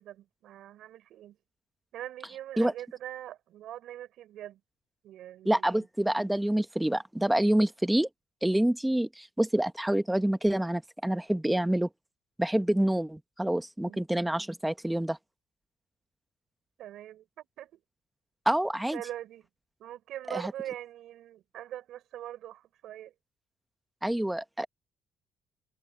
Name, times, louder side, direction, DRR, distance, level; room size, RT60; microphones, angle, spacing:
voice 1, 0.0-1.4 1.9-4.6 5.0-5.9 13.8-14.0 16.8-17.8 18.9-19.5 19.8-23.1, right 12 dB, 80° right, 6.3 m, -42 dB
voice 2, 5.4-8.1 8.4-11.9 12.4-15.2 18.4-19.0 20.3-20.5 24.0-24.7, right 1 dB, 5° right, 1.2 m, -27 dB
cardioid pair, 145°, 0 cm